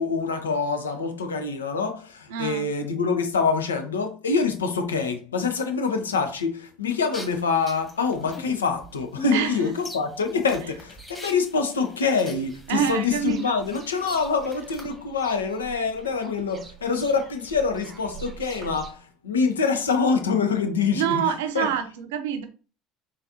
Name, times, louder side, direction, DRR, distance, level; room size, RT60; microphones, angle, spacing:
voice 1, 0.0-21.2 21.5-21.7, left 5 dB, 85° left, 0.5 m, -25 dB
voice 2, 2.3-2.7 9.3-9.7 12.7-13.5 20.9-22.4, right 9 dB, 70° right, 0.5 m, -26 dB
sound 1, 7.1-14.9, left 3 dB, 10° left, 1.2 m, -41 dB
sound 2, 12.3-18.9, right 7 dB, 35° right, 0.6 m, -46 dB
4.0 x 2.6 x 2.7 m
hypercardioid pair, 65°, 0 cm